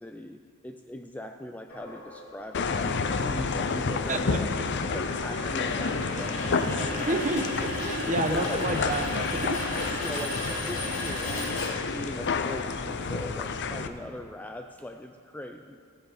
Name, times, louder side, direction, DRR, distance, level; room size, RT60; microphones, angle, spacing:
voice 1, 0.0-4.5 4.9-7.2 8.0-8.7 10.0-15.8, left 1 dB, 5° left, 6 dB, 0.3 m, -40 dB
sound 1, 1.7-12.3, left 1 dB, 70° left, 2.8 m, -37 dB
sound 2, 2.5-13.9, left 4 dB, 55° left, 0.6 m, -30 dB
voice 2, 4.1-4.4 7.1-9.7, right 2 dB, 35° right, 5 dB, 1.0 m, -29 dB
16.5 x 7.7 x 4.9 m, 2.3 s
head